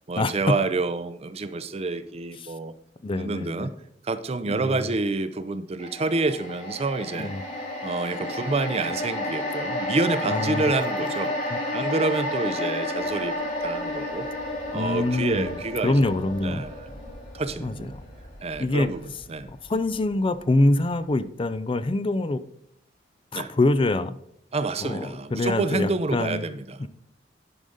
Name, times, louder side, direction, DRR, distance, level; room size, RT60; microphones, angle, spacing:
voice 1, 0.0-2.7 3.2-3.7 4.0-7.3 7.8-11.3 11.7-13.3 13.6-14.3 14.7-16.1 16.4-16.9 17.3-17.9 18.4-19.5 23.3-23.5 24.5-26.9, right 3 dB, 35° right, 12 dB, 0.5 m, -28 dB
voice 2, 3.0-3.7 4.5-5.0 7.2-7.4 10.2-10.6 11.5-11.6 14.7-15.6 15.8-16.6 17.6-17.9 18.6-18.9 19.5-22.4 23.3-24.2 24.8-26.4 26.8-26.9, left 2 dB, 30° left, 13 dB, 0.4 m, -25 dB
sound 1, 5.8-20.1 20.5-20.6, left 1 dB, 45° left, 3.4 m, -32 dB
11.0 x 5.0 x 4.0 m, 0.74 s
head